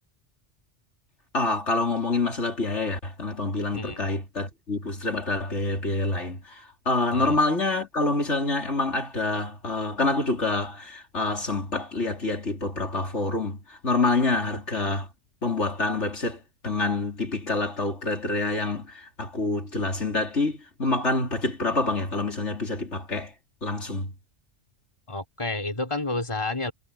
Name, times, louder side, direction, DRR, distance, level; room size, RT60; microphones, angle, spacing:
voice 1, 1.3-15.1 15.4-23.3 23.6-24.1, left 3 dB, 70° left, 4.0 m, -27 dB
voice 2, 3.7-4.1 7.1-7.4 14.3-14.5 25.1-26.7, left 2 dB, 25° left, 3.2 m, -30 dB
omnidirectional pair, 1.2 m